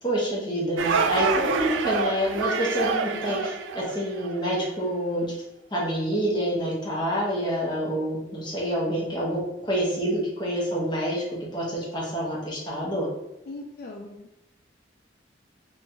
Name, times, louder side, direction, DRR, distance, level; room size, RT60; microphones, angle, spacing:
voice 1, 0.0-5.3 5.7-11.2 11.5-13.1, equal, 25° left, -5 dB, 0.9 m, -27 dB
sound 1, 0.8-4.4, right 5 dB, 85° right, 0.3 m, -27 dB
voice 2, 3.1-3.5 13.5-14.4, left 2 dB, 50° left, 1 dB, 0.3 m, -41 dB
3.7 x 2.5 x 2.8 m, 0.90 s
head